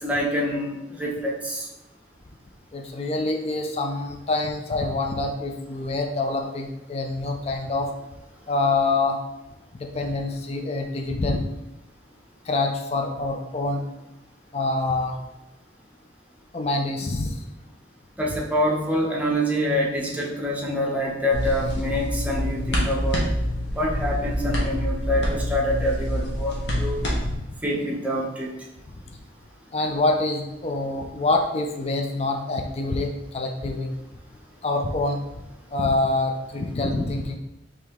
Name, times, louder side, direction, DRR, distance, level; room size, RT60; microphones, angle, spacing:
voice 1, 0.0-1.7 18.2-23.3 23.7-27.1 27.6-28.5, equal, 10° right, -2 dB, 0.8 m, -26 dB
voice 2, 2.7-7.9 8.5-9.2 9.7-11.4 12.5-13.8 14.5-15.2 16.5-17.3 27.2-27.4 29.7-33.9 34.6-35.2 35.7-37.3, left 2 dB, 35° left, 3 dB, 0.4 m, -26 dB
sound 1, 21.3-27.3, equal, 70° left, 1.1 m, -26 dB
4.8 x 3.0 x 3.6 m, 0.96 s
head